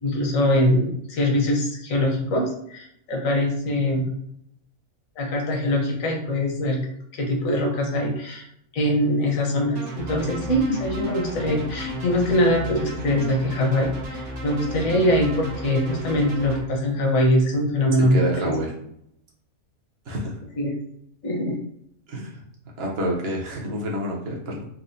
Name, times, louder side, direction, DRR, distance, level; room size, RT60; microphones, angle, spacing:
voice 1, 0.0-4.1 5.2-6.8 7.1-8.4 8.7-18.5 20.6-20.7 21.2-21.6, left 1 dB, 75° left, 1 dB, 1.2 m, -23 dB
sound 1, 9.8-16.6, equal, 80° right, 1.4 m, -33 dB
voice 2, 18.0-18.7 20.1-20.4 22.1-22.4 22.8-24.7, equal, 50° right, -2 dB, 1.0 m, -28 dB
4.2 x 2.2 x 2.6 m, 0.72 s
omnidirectional pair, 1.5 m